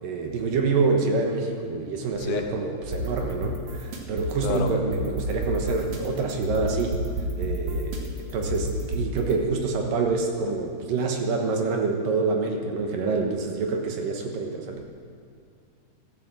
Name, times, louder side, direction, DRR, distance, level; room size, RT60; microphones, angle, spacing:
voice 1, 0.0-6.9 7.4-14.8, right 4 dB, 65° right, 2 dB, 2.7 m, -26 dB
voice 2, 2.2-2.5 4.4-4.7, left 8 dB, 75° left, 5 dB, 2.6 m, -29 dB
sound 1, 2.8-9.3, equal, 50° right, 2.3 m, -31 dB
14.5 x 12.0 x 7.5 m, 2.3 s
omnidirectional pair, 4.6 m